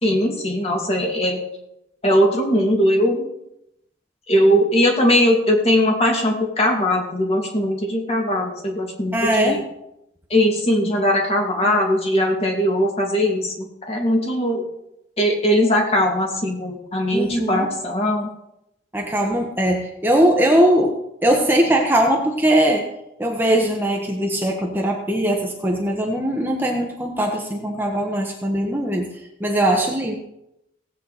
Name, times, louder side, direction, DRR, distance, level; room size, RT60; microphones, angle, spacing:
voice 1, 0.0-1.4 2.0-3.3 4.3-9.6 10.3-14.6 15.2-18.3, equal, 35° left, 0 dB, 2.5 m, -20 dB
voice 2, 9.1-9.6 17.1-17.7 18.9-20.9 21.2-22.9 23.2-29.1 29.4-30.2, right 1 dB, 10° right, 1 dB, 1.3 m, -20 dB
17.5 x 8.4 x 4.2 m, 0.85 s
head